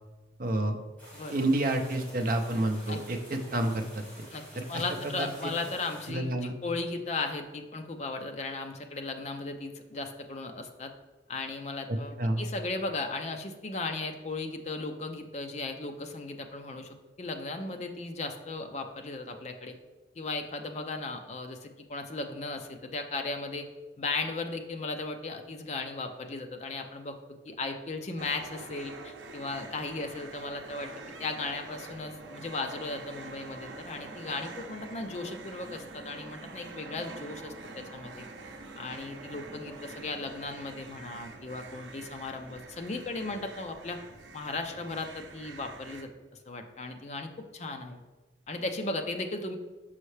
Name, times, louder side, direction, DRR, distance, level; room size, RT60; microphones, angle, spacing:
voice 1, 0.4-0.8 1.3-4.0 4.6-4.8 5.2-5.5 6.1-6.5 11.9-12.4, right 1 dB, 50° right, 5 dB, 0.6 m, -29 dB
sound 1, 1.0-6.1, equal, 10° left, 1.6 m, -50 dB
voice 2, 4.7-10.9 11.3-19.8 20.2-23.7 24.0-27.2 27.5-30.9 31.2-38.3 38.8-44.0 44.3-46.1 46.5-48.0 48.5-49.5, left 3 dB, 35° left, 5 dB, 0.5 m, -36 dB
sound 2, 28.2-46.0, right 3 dB, 90° right, 0.6 m, -46 dB
5.6 x 5.4 x 3.2 m, 1.2 s
head